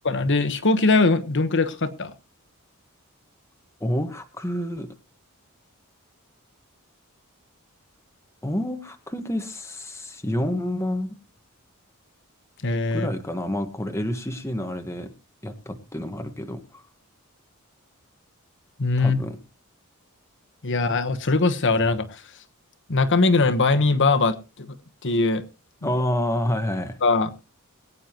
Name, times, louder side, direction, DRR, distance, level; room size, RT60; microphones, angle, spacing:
voice 1, 0.0-2.1 12.6-13.1 18.8-19.2 20.6-22.2 22.9-24.7 25.0-25.4 27.0-27.3, left 3 dB, 60° left, 10 dB, 1.2 m, -21 dB
voice 2, 3.8-4.9 8.4-11.2 12.9-15.1 15.4-16.8 19.0-19.4 25.8-27.0, left 1 dB, 15° left, 6 dB, 1.4 m, -28 dB
22.0 x 9.3 x 3.0 m, 0.32 s
head